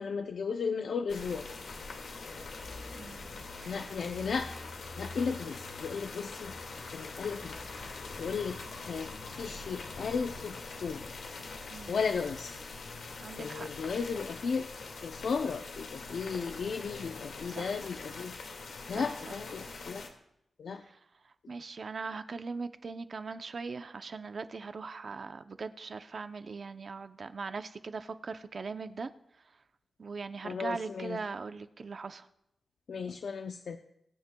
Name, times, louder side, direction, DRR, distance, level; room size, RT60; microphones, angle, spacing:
voice 1, 0.0-1.5 3.6-4.5 5.0-7.5 8.2-11.1 11.9-12.5 13.4-18.3 18.9-20.0 20.6-20.8 30.4-31.2 32.9-33.8, left 5 dB, 70° left, 6 dB, 0.6 m, -35 dB
sound 1, 1.1-20.1, left 3 dB, 85° left, 2.0 m, -43 dB
voice 2, 2.9-3.3 3.6-3.7 11.7-12.0 13.2-13.7 17.5-17.8 18.9-19.4 21.5-29.1 30.0-32.3, right 4 dB, 50° right, 10 dB, 0.6 m, -40 dB
22.5 x 9.5 x 2.3 m, 0.80 s
wide cardioid pair, 125°, 0 cm